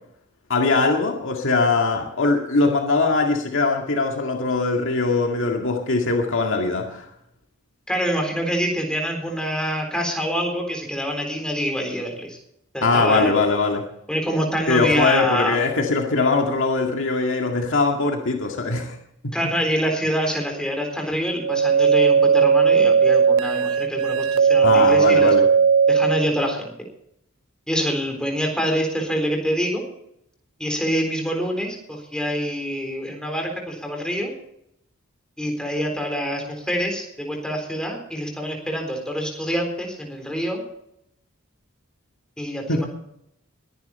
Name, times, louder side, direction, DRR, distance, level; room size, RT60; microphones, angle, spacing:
voice 1, 0.5-7.1 12.8-13.8 14.7-19.0 19.2-19.3 24.6-25.4 42.7-42.8, left 3 dB, 60° left, 2 dB, 2.1 m, -21 dB
voice 2, 7.9-12.4 12.7-13.3 14.1-15.6 19.3-25.4 25.9-26.7 27.7-29.8 30.6-34.3 35.4-40.6 42.4-42.9, equal, 5° left, 2 dB, 4.0 m, -26 dB
sound 1, 21.4-26.3, right 6 dB, 65° right, 0.5 m, -17 dB
22.0 x 10.5 x 4.3 m, 0.75 s
head